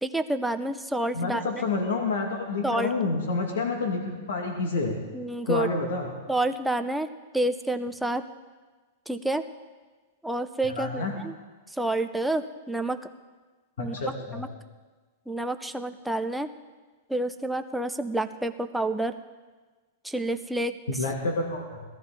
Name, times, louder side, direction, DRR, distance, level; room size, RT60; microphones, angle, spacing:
voice 1, 0.0-1.6 2.6-2.9 5.1-5.7 6.3-7.1 7.3-8.2 9.1-9.4 10.2-11.4 11.7-13.0 13.8-14.1 14.3-14.5 15.3-16.5 17.1-19.2 20.0-20.8, right 1 dB, ahead, 7 dB, 0.4 m, -29 dB
voice 2, 1.1-5.0 5.4-6.1 10.7-11.1 13.8-14.5 20.9-21.8, left 3 dB, 85° left, 2 dB, 2.1 m, -29 dB
18.5 x 13.0 x 4.0 m, 1.3 s
supercardioid pair, 165°, 0 cm